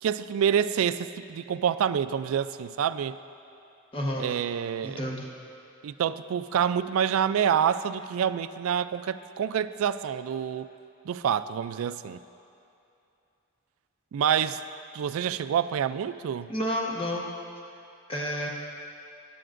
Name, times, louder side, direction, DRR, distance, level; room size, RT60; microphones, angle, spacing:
voice 1, 0.0-3.2 4.2-5.0 5.8-10.7 11.1-12.2 14.1-14.6 14.9-16.5, right 8 dB, 80° right, 14 dB, 0.3 m, -27 dB
voice 2, 3.9-4.3 4.8-5.3 16.5-17.3 18.1-18.5, equal, 25° left, -2 dB, 1.1 m, -30 dB
15.5 x 9.9 x 2.5 m, 2.7 s
head